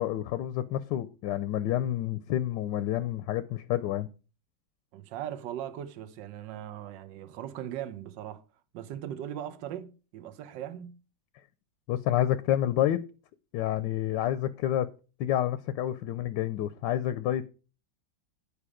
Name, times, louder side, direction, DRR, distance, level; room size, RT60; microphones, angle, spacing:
voice 1, 0.0-4.1 11.9-13.0 13.5-14.9 15.2-17.4, left 12 dB, 75° left, 1.2 m, -29 dB
voice 2, 4.9-8.4 8.7-11.0, right 11 dB, 75° right, 1.4 m, -39 dB
9.8 x 5.3 x 4.9 m
omnidirectional pair, 2.1 m